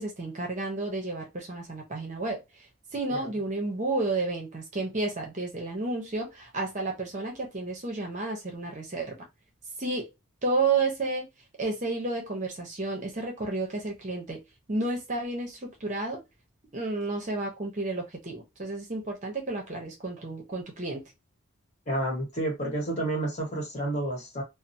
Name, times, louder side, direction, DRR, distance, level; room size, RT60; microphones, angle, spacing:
voice 1, 0.0-2.4 2.9-9.2 9.8-10.1 10.4-11.2 11.6-14.4 14.7-16.2 16.7-21.0, right 3 dB, 35° right, 0.7 m, -31 dB
voice 2, 21.9-24.4, right 1 dB, 35° left, 1.1 m, -30 dB
2.8 x 2.0 x 2.6 m
head